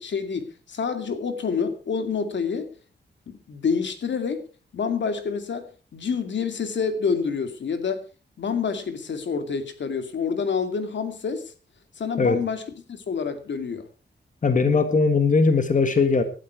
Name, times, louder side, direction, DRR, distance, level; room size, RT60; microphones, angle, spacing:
voice 1, 0.0-2.7 3.3-4.4 4.7-8.0 8.4-11.5 12.0-12.6 12.9-13.9, left 5 dB, 75° left, 8 dB, 2.2 m, -28 dB
voice 2, 14.4-16.2, left 4 dB, 45° left, 9 dB, 1.8 m, -19 dB
17.5 x 12.0 x 4.7 m, 0.36 s
wide cardioid pair, 140°, 19 cm